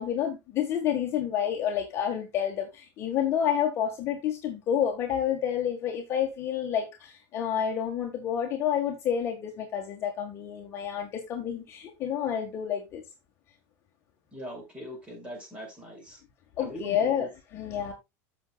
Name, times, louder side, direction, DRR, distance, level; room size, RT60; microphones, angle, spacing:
voice 1, 0.0-13.0 16.6-17.9, left 9 dB, 30° left, 1.6 m, -29 dB
voice 2, 14.3-16.2 16.6-17.3, equal, 15° right, 5.3 m, -41 dB
14.5 x 6.3 x 2.3 m
supercardioid pair, 170°, 9 cm